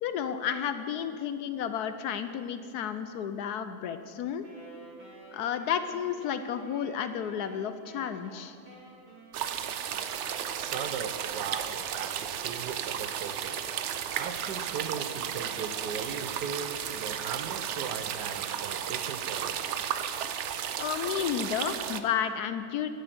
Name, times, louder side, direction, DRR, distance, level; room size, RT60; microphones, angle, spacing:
voice 1, 0.0-4.5 5.3-8.6 20.8-22.9, left 8 dB, 70° left, 10 dB, 1.0 m, -32 dB
Wind instrument woodwind instrument, 4.4-11.4, right 2 dB, 25° right, 2.2 m, -51 dB
sound 1, 9.3-22.0, right 9 dB, 90° right, 0.6 m, -34 dB
voice 2, 10.5-13.6 14.1-19.6, right 6 dB, 75° right, 9 dB, 1.3 m, -38 dB
12.0 x 8.0 x 7.7 m, 2.4 s
omnidirectional pair, 1.9 m